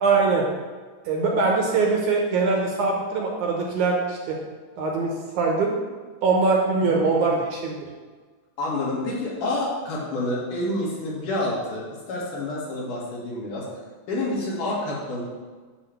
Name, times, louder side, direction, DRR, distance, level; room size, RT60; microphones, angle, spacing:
voice 1, 0.0-0.5 1.1-4.4 4.8-5.7 6.2-7.8, right 4 dB, 70° right, 0 dB, 2.2 m, -22 dB
voice 2, 6.9-7.4 8.6-13.7 14.1-15.2, left 2 dB, 65° left, -5 dB, 3.2 m, -28 dB
9.6 x 3.4 x 6.8 m, 1.4 s
omnidirectional pair, 4.1 m